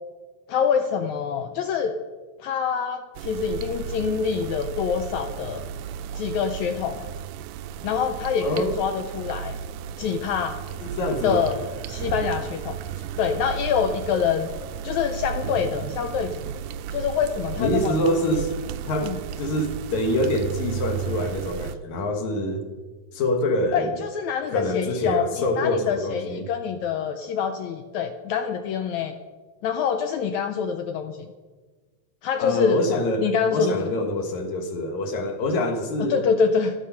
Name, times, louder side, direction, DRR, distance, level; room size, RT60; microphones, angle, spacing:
voice 1, 0.5-1.9 2.4-5.7 6.1-7.1 7.8-9.5 10.0-10.6 11.2-11.6 11.9-12.8 13.2-14.5 14.8-16.4 16.9-18.0 19.0-19.2 23.7-29.1 29.6-31.3 32.2-32.8 33.2-33.9 36.0-36.7, left 6 dB, 80° left, 7 dB, 1.6 m, -25 dB
sound 1, 3.1-21.8, right 9 dB, 90° right, 1.7 m, -34 dB
voice 2, 8.4-8.8 10.8-11.5 17.6-18.5 18.9-22.6 23.1-24.0 24.5-26.5 32.4-36.2, left 1 dB, 60° left, 5 dB, 2.5 m, -25 dB
13.0 x 12.0 x 5.7 m, 1.4 s
omnidirectional pair, 4.1 m